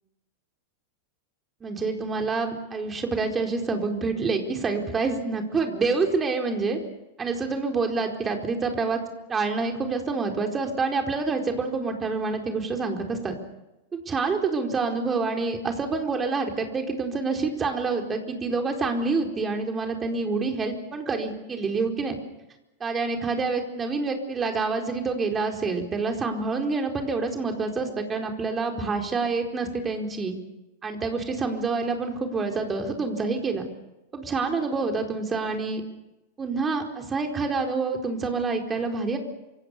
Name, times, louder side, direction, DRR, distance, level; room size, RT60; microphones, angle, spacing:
voice 1, 1.6-6.8 7.2-9.0 9.3-13.3 13.9-22.2 22.8-30.3 30.8-33.6 34.1-35.8 36.4-39.2, right 4 dB, 20° right, 3 dB, 4.5 m, -27 dB
27.0 x 26.5 x 6.9 m, 0.98 s
figure-of-eight pair, 90°, 0 cm